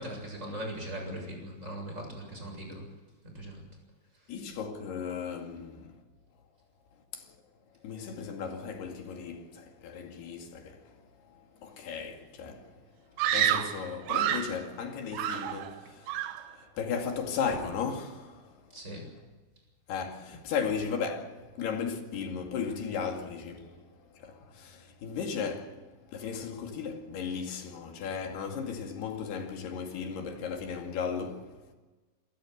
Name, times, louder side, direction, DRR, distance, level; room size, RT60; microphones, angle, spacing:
voice 1, 0.0-2.9 3.2-3.6 18.7-19.1, right 1 dB, 15° right, 7.6 m, -39 dB
voice 2, 4.3-6.0 7.1-7.4 7.8-10.9 11.3-12.8 13.2-18.6 19.9-31.7, left 6 dB, 75° left, 4.2 m, -36 dB
Screaming, 13.2-14.6 15.1-15.8 16.1-16.5, right 10 dB, 90° right, 3.3 m, -29 dB
28.0 x 14.5 x 8.0 m
omnidirectional pair, 4.6 m